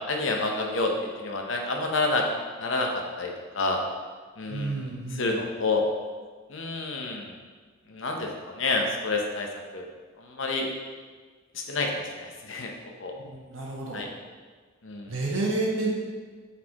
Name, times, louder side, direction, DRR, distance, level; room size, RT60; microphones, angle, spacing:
voice 1, 0.1-0.9 1.2-2.2 2.6-3.8 4.4-5.8 6.5-7.3 7.9-9.5 9.7-9.9 10.2-10.7 11.5-12.7 13.0-13.1 13.9-14.1 14.8-15.1, left 3 dB, 60° left, 2 dB, 0.8 m, -29 dB
voice 2, 4.5-5.4 13.2-14.0 15.1-15.9, right 2 dB, 65° right, -3 dB, 1.3 m, -30 dB
8.0 x 4.2 x 3.0 m, 1.5 s
head